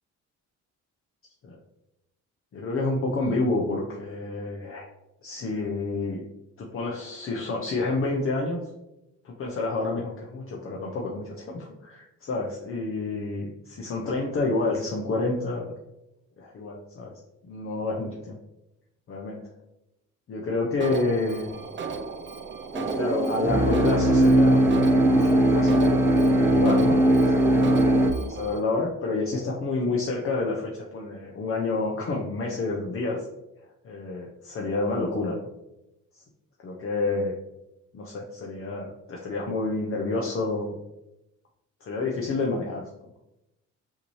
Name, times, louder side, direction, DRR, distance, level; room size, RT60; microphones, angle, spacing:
voice 1, 2.5-4.9 5.2-6.2 6.6-8.6 9.2-15.7 16.4-17.1 17.4-18.4 19.1-19.4 20.3-21.6 22.9-27.0 27.2-33.3 33.8-35.5 36.1-36.2 36.6-37.3 37.9-40.8 41.8-42.8, left 3 dB, 45° left, -1 dB, 0.7 m, -29 dB
Alarm, 20.8-28.6, right 5 dB, 40° right, 0.6 m, -36 dB
sound 1, 22.7-28.1, right 1 dB, 10° right, 0.8 m, -20 dB
5.7 x 2.8 x 3.1 m, 0.90 s
cardioid pair, 90°, 30 cm